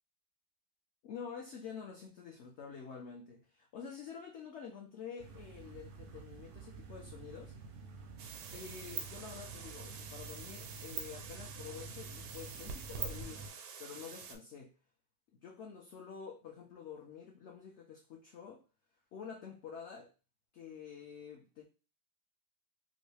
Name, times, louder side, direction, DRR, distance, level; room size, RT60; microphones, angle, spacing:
voice 1, 1.0-7.5 8.5-13.4 13.8-14.7 15.4-18.6 19.1-20.1 20.5-21.6, left 7 dB, 70° left, 1 dB, 0.6 m, -48 dB
sound 1, 5.2-13.5, right 4 dB, 65° right, 0.7 m, -50 dB
sound 2, 8.2-14.4, right 6 dB, 90° right, 1.2 m, -45 dB
3.0 x 2.6 x 3.2 m, 0.33 s
omnidirectional pair, 1.8 m